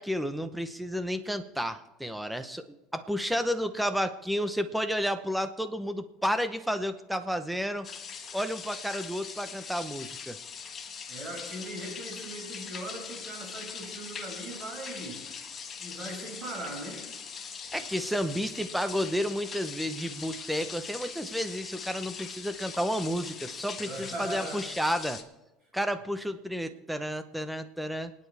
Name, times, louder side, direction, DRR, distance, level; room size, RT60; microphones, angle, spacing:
voice 1, 0.0-7.9 8.3-10.4 17.7-25.2 25.7-28.1, equal, ahead, 9 dB, 0.9 m, -31 dB
sound 1, 7.8-25.2, left 6 dB, 30° left, 1.4 m, -41 dB
voice 2, 11.1-15.2 15.8-17.1 23.8-24.6, right 1 dB, 30° right, -1 dB, 5.7 m, -39 dB
29.0 x 9.7 x 3.4 m, 1.0 s
cardioid pair, 135°, 0 cm